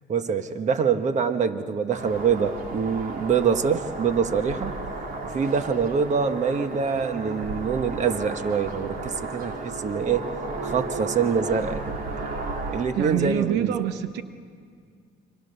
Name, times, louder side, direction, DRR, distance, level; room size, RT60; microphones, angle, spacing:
voice 1, 0.1-4.7 5.2-10.3 10.6-12.0 12.7-13.8, right 6 dB, 45° right, 9 dB, 1.4 m, -25 dB
sound 1, 1.9-12.8, right 3 dB, 60° right, 3.7 m, -34 dB
voice 2, 13.0-14.2, right 11 dB, 90° right, 11 dB, 0.9 m, -26 dB
29.5 x 24.5 x 6.9 m, 2.1 s
cardioid pair, 110°, 17 cm